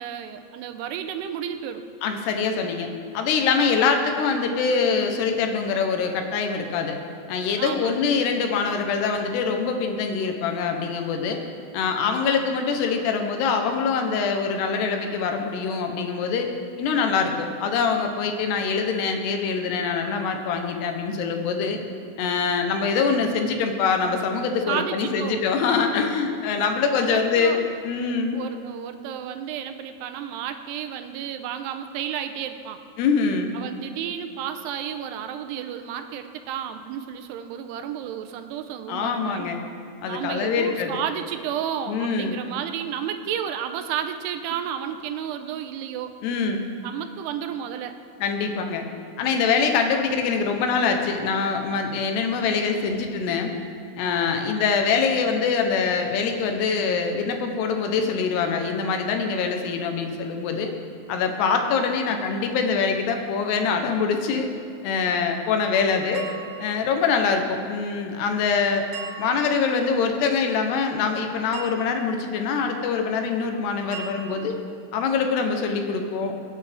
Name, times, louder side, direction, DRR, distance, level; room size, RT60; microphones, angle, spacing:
voice 1, 0.0-1.8 7.6-8.1 24.7-25.5 27.0-27.6 28.3-32.8 33.5-39.5 40.0-46.2 46.8-48.0, right 9 dB, 85° right, 8 dB, 2.7 m, -32 dB
voice 2, 2.0-2.9 3.1-7.0 7.3-11.4 11.7-16.5 16.8-21.8 22.2-28.4 33.0-33.5 38.9-39.6 40.0-41.0 41.9-42.4 46.2-46.7 48.2-48.9 49.2-53.5 54.0-60.7 61.1-64.5 64.8-66.3 66.6-68.9 69.2-74.6 74.9-76.3, left 5 dB, 80° left, 4 dB, 3.1 m, -24 dB
sound 1, 66.1-67.1 68.9-69.7 71.5-72.2 73.9-74.7, right 7 dB, 60° right, 4.1 m, -40 dB
24.0 x 8.9 x 3.5 m, 2.5 s
omnidirectional pair, 4.8 m